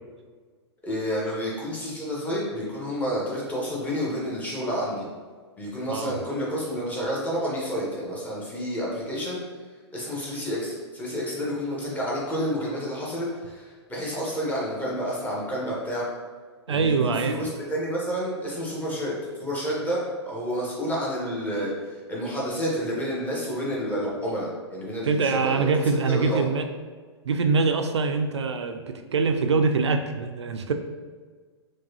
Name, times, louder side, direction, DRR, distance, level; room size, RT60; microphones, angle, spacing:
voice 1, 0.8-5.1 5.6-9.4 9.9-16.1 16.7-19.1 19.4-26.5, equal, 10° left, -5 dB, 1.0 m, -30 dB
voice 2, 16.7-17.4 25.1-26.7 27.3-30.7, right 4 dB, 75° right, 6 dB, 0.4 m, -24 dB
4.5 x 2.3 x 2.8 m, 1.5 s
figure-of-eight pair, 105°, 15 cm